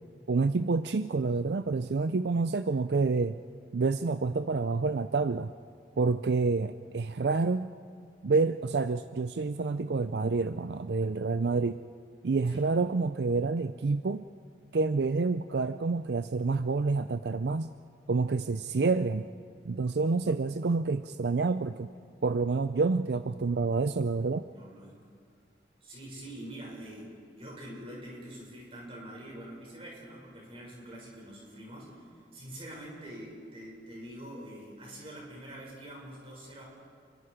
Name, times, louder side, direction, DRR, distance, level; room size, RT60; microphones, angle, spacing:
voice 1, 0.3-3.4 3.7-5.5 6.0-7.7 8.2-11.8 12.2-14.3 14.7-17.7 18.1-19.3 19.6-21.9 22.2-24.5, right 4 dB, 75° right, 11 dB, 0.5 m, -28 dB
voice 2, 24.5-24.9 25.8-36.6, right 1 dB, 30° right, -3 dB, 6.7 m, -45 dB
28.5 x 23.0 x 5.1 m, 2.2 s
head